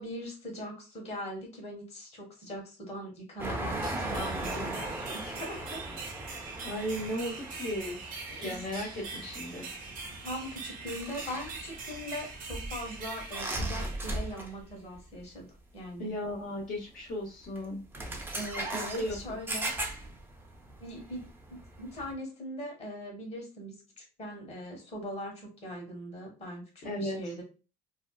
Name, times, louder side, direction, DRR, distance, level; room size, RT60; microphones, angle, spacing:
voice 1, 0.0-5.9 8.3-8.6 10.2-15.5 15.7-16.1 18.3-19.7 20.8-27.4, equal, 40° left, 1 dB, 1.2 m, -41 dB
sound 1, 3.4-14.7 14.9-15.2 16.3-16.4 17.4-17.6 17.9-22.1, right 1 dB, 10° right, 0.5 m, -38 dB
sound 2, 3.8-14.5, right 4 dB, 55° right, 0.7 m, -43 dB
voice 2, 6.6-9.7 16.0-17.8 18.7-19.2 26.8-27.3, left 1 dB, 55° left, -5 dB, 0.8 m, -36 dB
2.6 x 2.2 x 2.2 m, 0.32 s
cardioid pair, 110°, 17 cm